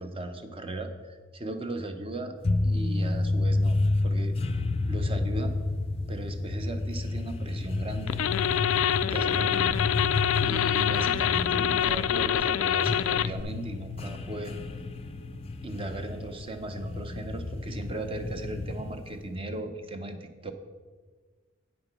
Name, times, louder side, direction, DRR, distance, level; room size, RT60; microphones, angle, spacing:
voice 1, 0.0-2.4 2.6-4.4 4.9-5.5 6.1-8.2 9.0-9.7 10.4-14.6 15.6-20.5, right 1 dB, 25° right, 7 dB, 0.7 m, -37 dB
sound 1, 2.4-19.2, left 2 dB, 30° left, 0.5 m, -30 dB
sound 2, 8.1-13.4, left 10 dB, 90° left, 0.3 m, -26 dB
8.9 x 5.3 x 6.0 m, 1.5 s
head